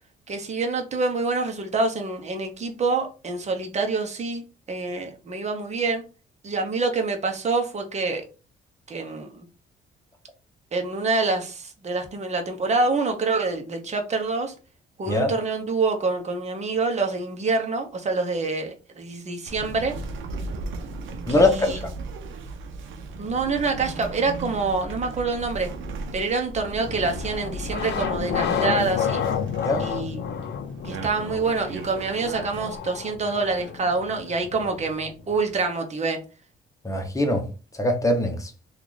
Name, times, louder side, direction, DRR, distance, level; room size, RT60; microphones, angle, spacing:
voice 1, 0.3-6.0 6.4-8.2 8.9-9.4 10.7-14.5 15.0-19.9 21.3-21.8 23.2-25.7 26.1-29.2 29.8-30.2 30.8-36.2, right 3 dB, 35° right, 0.9 m, -26 dB
sound 1, 19.5-32.8, right 3 dB, 80° right, 0.7 m, -36 dB
voice 2, 21.3-21.8 29.6-29.8 36.8-37.4 37.7-38.5, left 1 dB, 15° left, 1.0 m, -22 dB
sound 2, 26.8-35.6, left 8 dB, 60° left, 0.6 m, -31 dB
2.9 x 2.5 x 3.9 m
cardioid pair, 90°, 20 cm